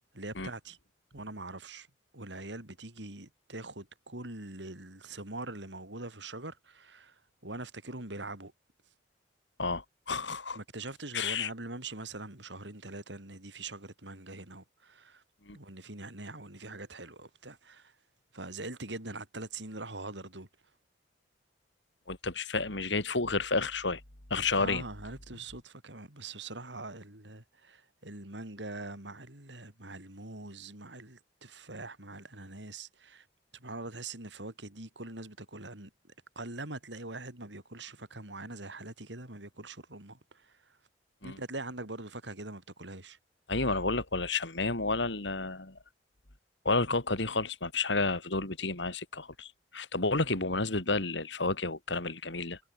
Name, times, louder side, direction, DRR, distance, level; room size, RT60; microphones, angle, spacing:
voice 1, 0.1-0.8 1.1-1.9 2.1-7.1 7.4-8.5 10.5-15.2 15.5-17.9 18.3-20.5 24.6-33.3 33.6-35.9 36.4-40.5 41.2-43.2, right 2 dB, 70° right, 5.2 m, -43 dB
voice 2, 9.6-10.6 11.1-11.5 15.5-15.6 22.1-24.0 24.3-24.8 41.2-41.4 43.5-45.8 46.7-52.6, left 3 dB, 75° left, 3.4 m, -31 dB
head